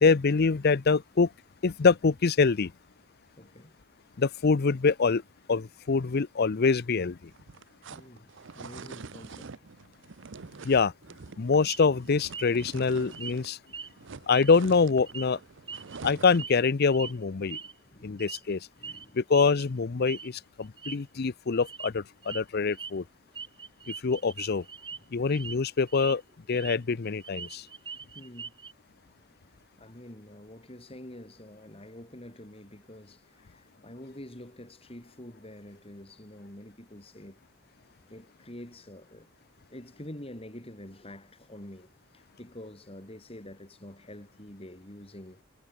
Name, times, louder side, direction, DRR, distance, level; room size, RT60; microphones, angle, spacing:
voice 1, 0.0-1.3 1.6-2.7 4.2-5.2 5.5-7.2 10.6-10.9 11.4-13.6 14.3-15.4 16.0-17.6 18.0-18.6 19.2-23.0 24.0-24.6 25.1-26.2 26.5-27.6, left 4 dB, 50° left, 0.6 m, -25 dB
voice 2, 3.4-3.8 7.9-9.6 10.3-10.7 11.1-11.2 17.9-18.2 18.8-19.2 22.9-23.1 28.1-28.5 29.8-37.5 38.1-39.3 39.7-45.4, left 1 dB, 30° left, 3.9 m, -47 dB
sound 1, 7.3-13.6 13.8-16.6, right 4 dB, 65° right, 0.8 m, -46 dB
sound 2, 11.7-11.9 12.3-12.6 13.1-13.4 13.7-13.9 14.3-14.8 15.1-15.3 15.7-16.6 16.9-17.1 17.5-17.7 18.2-18.5 18.8-19.0 19.3-19.6 20.1-20.3 20.6-21.0 21.6-21.9 22.2-22.4 22.7-22.9 23.3-25.0 25.3-25.5 25.9-26.8 27.1-28.7, right 5 dB, 25° right, 3.1 m, -41 dB
head